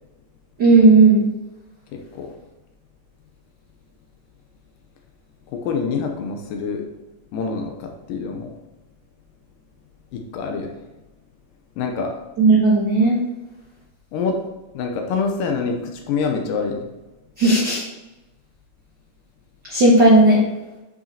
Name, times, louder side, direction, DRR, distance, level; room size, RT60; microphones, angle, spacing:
voice 1, 0.6-1.3 12.4-13.2 17.4-17.8 19.7-20.4, right 2 dB, 85° right, -3 dB, 0.9 m, -14 dB
voice 2, 1.9-2.4 5.5-6.9 7.3-8.5 10.1-10.8 11.8-12.2 14.1-14.4 14.7-16.9, left 5 dB, 85° left, 2 dB, 2.4 m, -26 dB
9.5 x 5.8 x 2.8 m, 1.1 s
omnidirectional pair, 3.9 m